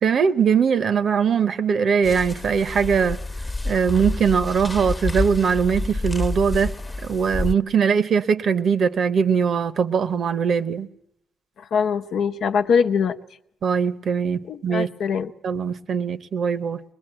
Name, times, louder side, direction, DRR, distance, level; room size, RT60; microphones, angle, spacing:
voice 1, 0.0-3.2 3.6-6.7 7.0-10.9 13.6-14.9 15.4-16.8, right 6 dB, 55° right, 0.9 m, -21 dB
sound 1, 2.0-7.5, left 2 dB, 20° left, 1.1 m, -28 dB
voice 2, 11.6-13.2 14.5-15.3, left 6 dB, 70° left, 1.0 m, -22 dB
22.0 x 21.0 x 9.0 m
cardioid pair, 90°, 0 cm